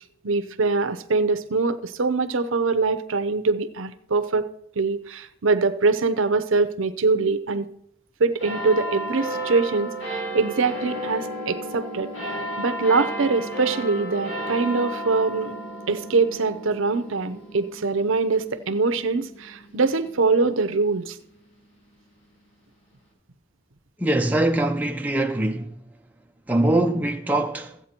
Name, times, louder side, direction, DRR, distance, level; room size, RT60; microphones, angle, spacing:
voice 1, 0.2-4.5 4.8-7.7 8.2-15.6 15.9-21.2, right 4 dB, 75° right, 0.7 m, -23 dB
sound 1, 8.4-21.3 21.9-22.0, right 1 dB, 65° left, 5.0 m, -33 dB
voice 2, 24.0-25.8 26.5-27.9, right 1 dB, 10° right, 0.5 m, -23 dB
14.0 x 8.4 x 4.3 m
head